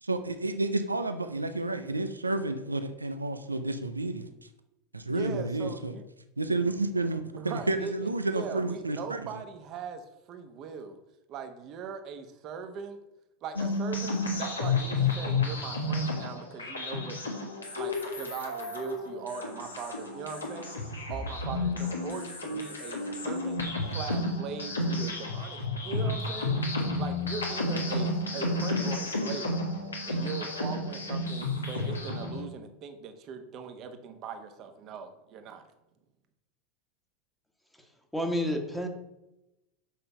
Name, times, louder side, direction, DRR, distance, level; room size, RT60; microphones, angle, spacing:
voice 1, 0.0-4.3 4.9-5.9 6.4-9.2, right 2 dB, 85° right, 9 dB, 0.5 m, -30 dB
voice 2, 5.1-6.1 7.4-11.0 11.3-13.0 13.4-17.2 17.7-20.8 21.1-23.6 23.9-26.7 27.0-29.6 30.0-35.7, right 6 dB, 40° right, 7 dB, 1.2 m, -40 dB
sound 1, 13.6-32.4, left 2 dB, 80° left, 1.6 m, -31 dB
voice 3, 37.7-38.9, equal, 5° left, 4 dB, 1.4 m, -31 dB
7.5 x 5.6 x 5.5 m, 0.92 s
figure-of-eight pair, 80°, 0 cm